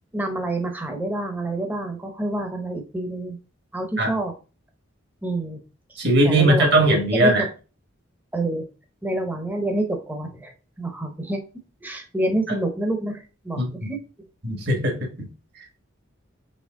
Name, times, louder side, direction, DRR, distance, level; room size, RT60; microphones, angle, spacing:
voice 1, 0.1-3.4 3.7-4.3 5.2-5.6 6.2-7.3 8.3-8.7 9.0-10.5 10.8-11.4 11.8-13.2 13.4-14.0, right 1 dB, 10° right, 4 dB, 0.7 m, -27 dB
voice 2, 6.0-7.5 13.5-13.9 14.4-15.3, right 1 dB, 55° right, 2 dB, 1.4 m, -20 dB
4.3 x 3.2 x 3.6 m, 0.34 s
head